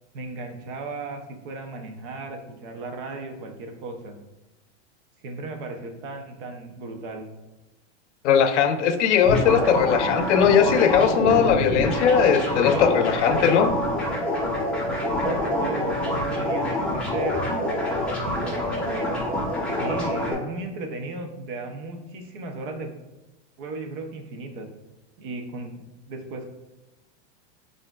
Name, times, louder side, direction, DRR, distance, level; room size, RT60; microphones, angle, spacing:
voice 1, 0.1-4.2 5.2-7.3 15.2-17.4 18.2-19.1 19.8-22.9 23.6-24.7 25.2-26.5, right 2 dB, 50° right, 4 dB, 0.6 m, -35 dB
voice 2, 8.2-13.7, left 7 dB, 80° left, 9 dB, 0.6 m, -19 dB
sound 1, 9.2-20.3, left 1 dB, 5° left, 0.7 m, -26 dB
5.5 x 2.6 x 2.3 m, 1.0 s
supercardioid pair, 155°, 35 cm